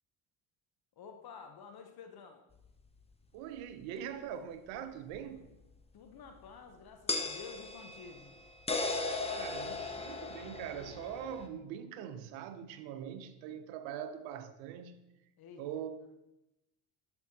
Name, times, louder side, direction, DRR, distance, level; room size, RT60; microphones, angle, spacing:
voice 1, 1.0-2.4 5.9-8.3 15.4-15.6, left 5 dB, 55° left, 1.0 m, -50 dB
sound 1, 2.6-2.7 5.1-5.2 7.1-11.5, left 3 dB, 15° left, 0.7 m, -37 dB
voice 2, 3.3-5.5 9.3-15.0 15.6-15.9, right 9 dB, 80° right, 0.8 m, -42 dB
11.5 x 4.4 x 2.9 m
hypercardioid pair, 60°, 45 cm